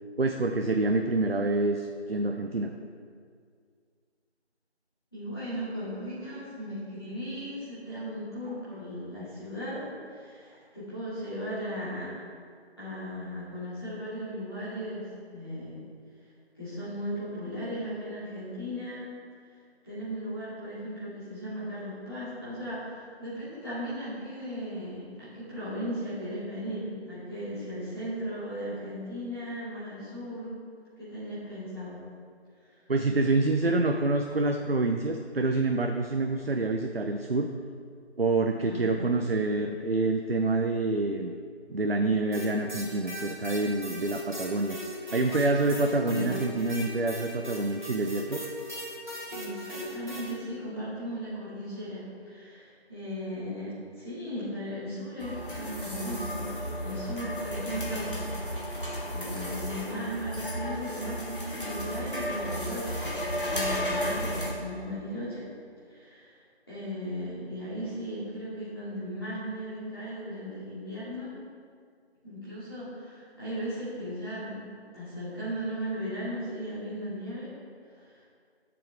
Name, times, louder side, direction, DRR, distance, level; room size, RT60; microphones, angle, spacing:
voice 1, 0.2-2.7 32.9-37.5 38.2-41.4 41.7-44.8 45.1-48.4, right 2 dB, 60° right, 4 dB, 0.6 m, -27 dB
voice 2, 5.1-12.1 12.8-15.8 16.5-19.1 19.8-30.5 31.0-32.0 32.6-32.8 38.5-39.1 46.0-46.3 49.3-56.5 56.8-63.1 63.5-65.4 65.9-66.4 66.7-71.3 72.2-74.5 74.9-77.5 77.9-78.2, equal, 20° left, -13 dB, 2.3 m, -37 dB
sound 1, 42.3-50.3, equal, 45° right, 1.8 m, -38 dB
sound 2, 55.2-64.5, equal, 50° left, 1.7 m, -33 dB
11.5 x 6.9 x 3.4 m, 2.1 s
figure-of-eight pair, 175°, 33 cm